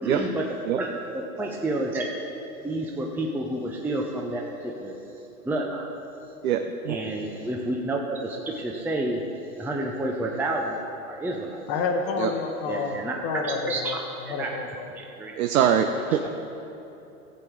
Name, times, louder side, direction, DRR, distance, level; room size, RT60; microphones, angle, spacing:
voice 1, 0.0-0.5 0.8-0.9 1.1-2.1 2.6-4.9 5.4-5.9 6.9-9.2 9.6-11.6 12.7-13.1 13.4-14.0 14.3-14.5 15.0-15.4 16.1-16.3, right 1 dB, 5° right, 0 dB, 0.5 m, -30 dB
voice 2, 6.4-7.0 12.2-12.3 15.4-16.2, right 8 dB, 70° right, 6 dB, 0.8 m, -23 dB
voice 3, 11.7-13.0 13.2-14.9, left 4 dB, 40° left, 3 dB, 1.1 m, -29 dB
15.0 x 7.7 x 4.6 m, 2.9 s
hypercardioid pair, 110°, 44 cm